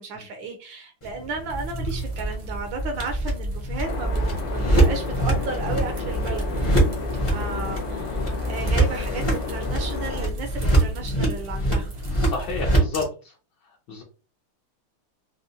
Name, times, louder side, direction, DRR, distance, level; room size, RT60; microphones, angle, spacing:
voice 1, 0.0-6.5 7.0-11.9, right 3 dB, 75° right, 5 dB, 1.2 m, -34 dB
sound 1, 1.0-13.0, right 1 dB, 35° left, 0.4 m, -25 dB
sound 2, 1.5-12.7, right 1 dB, 55° right, 0.7 m, -34 dB
sound 3, 3.8-10.3, left 4 dB, 90° left, 2.1 m, -31 dB
voice 2, 12.2-13.3 13.9-14.0, left 3 dB, 65° left, 0 dB, 1.2 m, -30 dB
4.8 x 2.1 x 2.7 m, 0.35 s
omnidirectional pair, 2.4 m